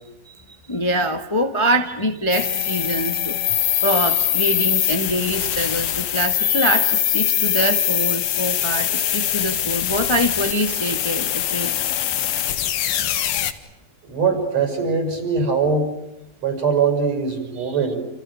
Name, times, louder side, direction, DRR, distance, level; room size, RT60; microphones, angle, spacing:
voice 1, 0.5-3.4 3.8-11.7 17.6-17.8, right 1 dB, 30° left, 6 dB, 0.4 m, -24 dB
sound 1, 2.3-13.5, left 11 dB, 85° left, 3.5 m, -22 dB
voice 2, 14.0-15.9 16.4-18.0, right 5 dB, 45° right, 7 dB, 7.6 m, -21 dB
29.5 x 29.5 x 6.5 m, 0.92 s
omnidirectional pair, 4.2 m